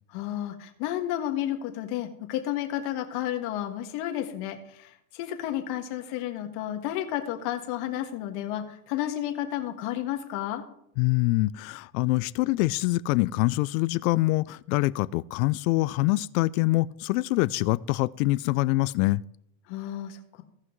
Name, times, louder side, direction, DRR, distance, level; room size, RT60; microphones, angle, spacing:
voice 1, 0.1-10.6 19.7-20.4, left 12 dB, 70° left, 5 dB, 1.6 m, -32 dB
voice 2, 11.0-19.2, left 20 dB, 85° left, 18 dB, 0.5 m, -25 dB
17.0 x 5.7 x 3.1 m, 0.76 s
supercardioid pair, 120°, 41 cm